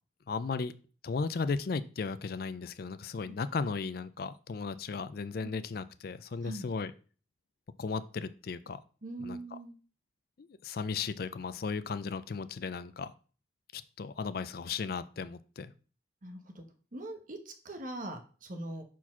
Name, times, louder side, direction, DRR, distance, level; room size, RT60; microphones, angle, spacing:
voice 1, 0.3-0.7 1.0-6.9 7.8-8.8 9.2-9.6 10.4-13.1 13.7-15.7, left 4 dB, 55° left, 13 dB, 0.4 m, -36 dB
voice 2, 9.0-9.7 16.2-16.6 16.9-18.8, right 1 dB, 50° right, 5 dB, 1.0 m, -42 dB
4.6 x 4.2 x 5.8 m, 0.38 s
head